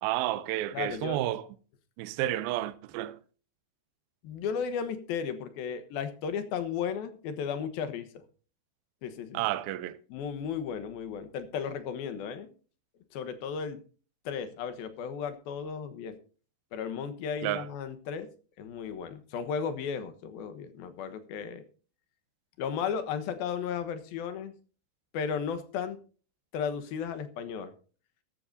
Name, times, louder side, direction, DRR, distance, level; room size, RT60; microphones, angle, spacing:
voice 1, 0.0-1.4 2.0-3.2 9.3-10.0 17.4-17.7, right 14 dB, 80° right, 2.5 m, -31 dB
voice 2, 0.7-1.2 4.2-8.2 9.0-9.4 10.1-12.5 13.1-13.8 14.3-16.2 16.7-18.3 18.6-21.6 22.6-24.5 25.1-26.0 26.5-27.7, left 7 dB, 80° left, 3.1 m, -34 dB
15.5 x 14.0 x 2.7 m
omnidirectional pair, 4.3 m